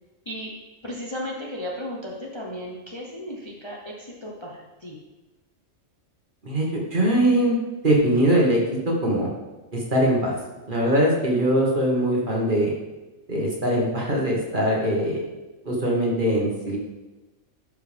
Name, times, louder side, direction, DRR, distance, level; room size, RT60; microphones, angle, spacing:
voice 1, 0.8-5.0, equal, 25° left, -3 dB, 0.9 m, -35 dB
voice 2, 6.4-7.6 7.8-8.6 8.9-9.3 9.7-10.3 10.7-12.7 13.3-15.2 15.6-16.8, right 1 dB, 40° right, -3 dB, 1.8 m, -21 dB
12.0 x 5.1 x 3.5 m, 1.1 s
omnidirectional pair, 1.4 m